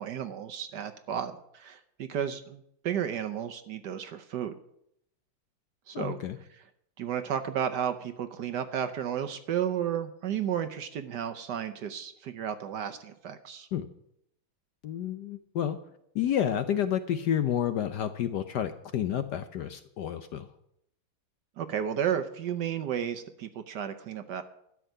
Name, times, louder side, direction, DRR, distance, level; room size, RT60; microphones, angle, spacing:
voice 1, 0.0-4.6 5.9-6.2 7.0-13.7 21.6-24.4, right 9 dB, 65° right, 9 dB, 1.2 m, -33 dB
voice 2, 5.9-6.4 13.7-13.9 14.8-15.8 16.1-20.5, left 10 dB, 70° left, 10 dB, 1.1 m, -30 dB
12.5 x 6.2 x 9.3 m, 0.75 s
omnidirectional pair, 2.3 m